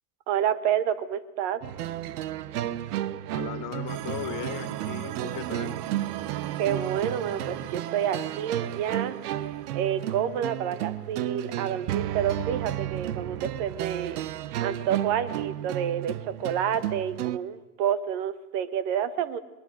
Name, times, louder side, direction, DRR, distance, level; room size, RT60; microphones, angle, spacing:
voice 1, 0.3-1.6 6.6-9.2 9.7-14.2 14.6-19.4, right 9 dB, 60° right, 13 dB, 1.6 m, -29 dB
sound 1, 1.6-17.4, right 12 dB, 80° right, 1.0 m, -33 dB
voice 2, 3.3-5.8, left 10 dB, 45° left, 11 dB, 1.9 m, -37 dB
sound 2, 3.9-10.9, right 12 dB, 45° right, 1.0 m, -39 dB
21.0 x 20.5 x 7.7 m, 1.1 s
hypercardioid pair, 105°, 45 cm